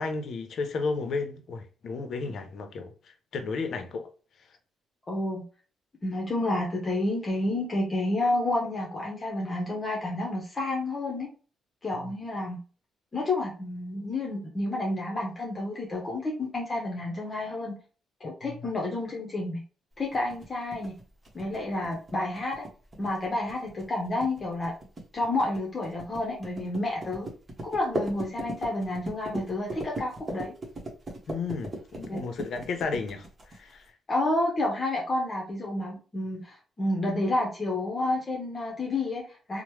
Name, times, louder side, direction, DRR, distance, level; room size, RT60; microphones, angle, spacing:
voice 1, 0.0-4.1 12.0-12.1 18.5-18.6 31.3-33.9, left 4 dB, 60° left, 0.6 m, -33 dB
voice 2, 5.1-5.4 6.0-11.3 11.8-12.6 13.1-17.8 18.2-19.6 20.0-21.0 21.3-22.7 23.0-24.7 25.1-27.3 27.6-30.5 32.1-32.2 34.1-39.6, left 2 dB, 30° left, 0.8 m, -30 dB
sound 1, 20.1-33.9, right 1 dB, 30° right, 1.0 m, -38 dB
3.1 x 2.1 x 3.1 m
cardioid pair, 90°, 0 cm